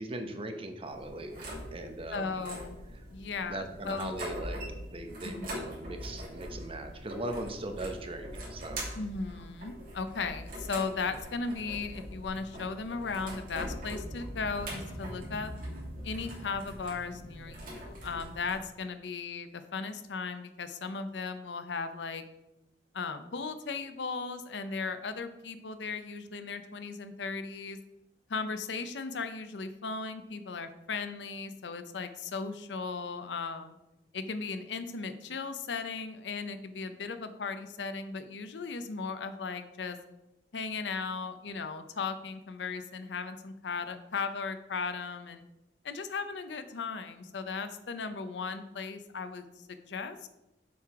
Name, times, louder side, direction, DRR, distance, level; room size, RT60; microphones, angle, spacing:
voice 1, 0.0-2.4 3.5-4.6 4.9-8.8, right 1 dB, 30° right, 6 dB, 0.8 m, -39 dB
sound 1, 0.8-18.5, equal, 55° right, 2.5 m, -42 dB
voice 2, 2.1-2.8 3.1-4.2 5.2-5.7 8.9-15.5 16.0-22.2 22.9-27.8 28.3-33.8 34.1-40.0 40.5-45.4 45.8-50.3, left 4 dB, 80° left, 10 dB, 0.6 m, -37 dB
7.1 x 4.7 x 4.7 m, 0.93 s
head